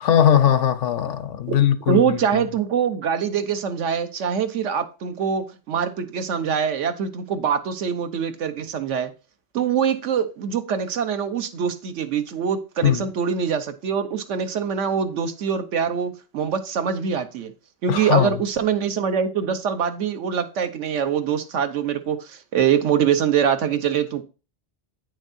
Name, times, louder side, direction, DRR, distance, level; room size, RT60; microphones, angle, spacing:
voice 1, 0.0-2.2 12.8-13.1 17.9-18.3, left 10 dB, 85° left, 1.1 m, -19 dB
voice 2, 1.9-9.1 9.5-17.5 17.8-24.2, right 7 dB, 90° right, 1.2 m, -24 dB
8.9 x 6.3 x 2.6 m
omnidirectional pair, 1.2 m